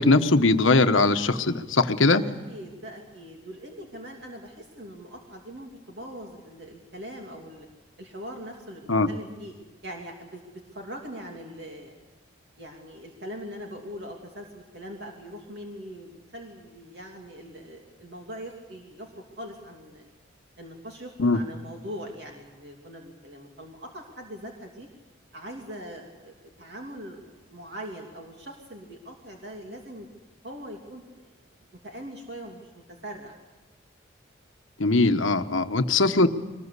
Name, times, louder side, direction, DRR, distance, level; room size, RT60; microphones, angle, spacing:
voice 1, 0.0-2.2 8.9-9.1 21.2-21.4 34.8-36.3, left 3 dB, 85° left, 9 dB, 1.3 m, -20 dB
voice 2, 2.1-7.7 8.0-9.5 9.8-11.9 12.6-20.1 20.6-24.9 25.3-30.1 30.4-31.3 31.8-33.3, equal, 55° right, 1 dB, 2.8 m, -41 dB
23.5 x 20.5 x 8.3 m, 1.3 s
head